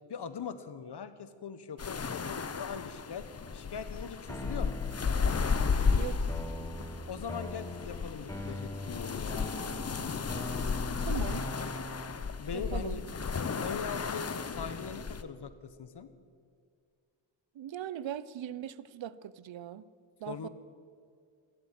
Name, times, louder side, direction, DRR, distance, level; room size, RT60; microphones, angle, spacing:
voice 1, 0.1-4.8 7.1-9.5 12.4-13.0 13.3-16.1 20.3-20.5, left 6 dB, 55° left, 1.2 m, -41 dB
sound 1, 1.8-15.2, left 5 dB, 30° left, 0.8 m, -34 dB
sound 2, 4.3-12.3, left 1 dB, 5° left, 1.0 m, -42 dB
voice 2, 6.0-6.3 11.0-11.4 12.5-13.0 17.5-19.9 20.2-20.5, right 10 dB, 70° right, 0.7 m, -40 dB
16.0 x 11.5 x 7.6 m
cardioid pair, 85°, 47 cm